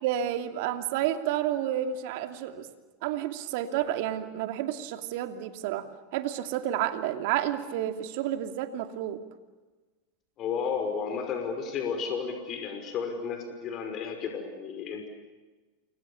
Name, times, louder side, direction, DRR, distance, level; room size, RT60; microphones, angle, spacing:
voice 1, 0.0-2.7 3.0-5.9 6.1-9.2, right 11 dB, 65° right, 8 dB, 2.8 m, -30 dB
voice 2, 10.4-15.1, left 6 dB, 45° left, 5 dB, 5.6 m, -32 dB
29.0 x 24.5 x 7.2 m, 1.3 s
hypercardioid pair, 95°, 0 cm